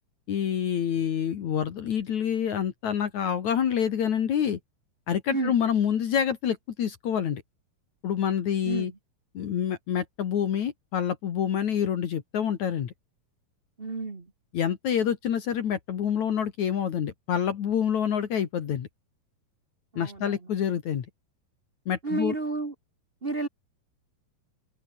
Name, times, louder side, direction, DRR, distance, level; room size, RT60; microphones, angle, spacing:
voice 1, 0.3-4.6 5.1-7.4 8.0-8.9 9.3-12.9 14.5-18.9 20.0-21.1 21.9-22.3, left 8 dB, 60° left, 2.9 m, -27 dB
voice 2, 13.8-14.3 19.9-20.3 22.0-22.7 23.2-23.5, right 3 dB, 45° right, 0.7 m, -31 dB
open air
omnidirectional pair, 4.1 m